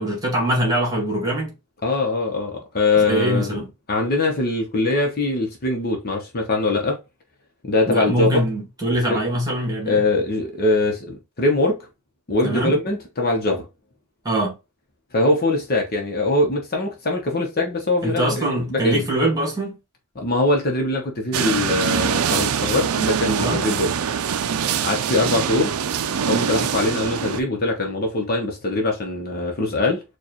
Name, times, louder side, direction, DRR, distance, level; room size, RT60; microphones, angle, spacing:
voice 1, 0.0-1.5 2.9-3.6 7.9-10.0 12.4-12.7 14.2-14.5 18.0-19.8 23.4-23.6, right 1 dB, 15° right, 1.8 m, -23 dB
voice 2, 1.8-3.6 3.9-7.0 7.6-8.5 9.0-9.2 9.9-11.8 12.3-13.6 15.1-19.0 20.2-23.9 24.8-25.8 26.3-30.0, left 2 dB, 45° left, 0.9 m, -22 dB
sound 1, 21.3-27.4, right 7 dB, 75° right, 0.4 m, -23 dB
4.5 x 2.4 x 3.0 m
head